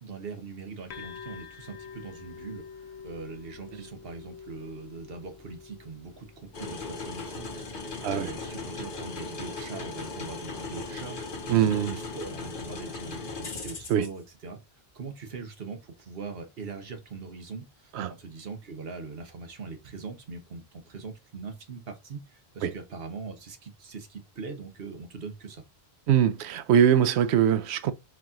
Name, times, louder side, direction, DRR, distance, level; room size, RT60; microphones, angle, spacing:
voice 1, 0.0-14.6 14.9-25.6, right 4 dB, 65° right, 1.3 m, -41 dB
sound 1, 0.9-8.4, left 6 dB, 85° left, 1.0 m, -47 dB
sound 2, 6.5-14.1, left 3 dB, 55° left, 1.2 m, -37 dB
voice 2, 11.5-11.9 13.9-14.0 17.9-18.1 22.6-22.7 26.1-27.9, right 9 dB, 90° right, 0.8 m, -22 dB
4.7 x 2.9 x 3.7 m
omnidirectional pair, 1.1 m